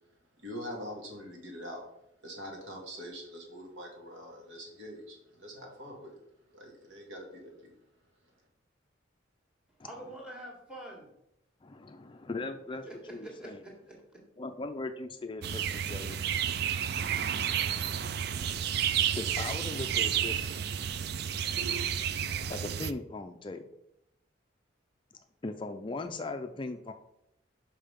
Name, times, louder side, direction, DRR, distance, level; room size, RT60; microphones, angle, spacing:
voice 1, 0.4-1.8 2.2-6.2 6.5-7.7, equal, 80° right, 0 dB, 2.0 m, -44 dB
voice 2, 9.8-11.1 12.8-14.2, right 1 dB, 5° right, -1 dB, 1.7 m, -46 dB
voice 3, 11.6-13.6 14.4-16.2 18.5-20.7 22.5-23.7 25.4-26.9, left 3 dB, 25° left, 7 dB, 0.4 m, -39 dB
sound 1, 15.4-22.9, right 8 dB, 55° right, 0.3 m, -31 dB
5.6 x 5.4 x 5.1 m, 0.80 s
head